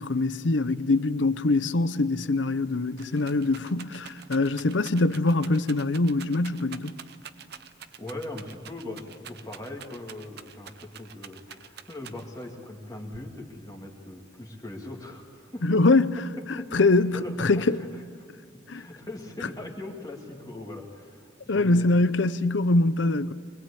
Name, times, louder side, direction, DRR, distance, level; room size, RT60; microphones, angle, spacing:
voice 1, 0.0-6.9 15.6-16.1 16.5-17.8 18.7-18.9 21.5-23.3, left 2 dB, 80° left, 0.8 m, -23 dB
Rattle, 2.6-12.5 13.1-13.8, right 7 dB, 55° right, 0.9 m, -46 dB
voice 2, 8.0-15.8 16.6-18.0 18.5-21.9, left 1 dB, 20° left, 2.2 m, -40 dB
24.0 x 21.0 x 8.5 m
head